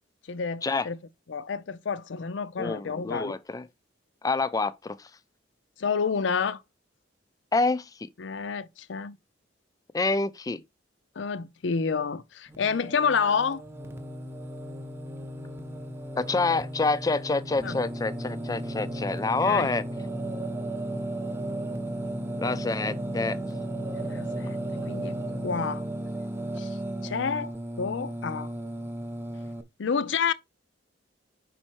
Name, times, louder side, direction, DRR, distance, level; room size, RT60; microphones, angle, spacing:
voice 1, 0.3-1.0 1.3-3.4 5.8-6.6 8.2-9.2 11.2-13.6 17.6-17.8 19.4-19.7 24.0-25.8 26.6-26.8 27.0-28.5 29.8-30.3, left 5 dB, 70° left, 0.5 m, -29 dB
voice 2, 2.6-3.7 4.2-5.0 7.5-7.9 9.9-10.6 16.2-19.8 22.4-23.4, left 3 dB, 20° left, 0.3 m, -27 dB
Singing, 12.5-29.6, right 1 dB, 10° right, 0.7 m, -35 dB
5.4 x 4.3 x 4.5 m
head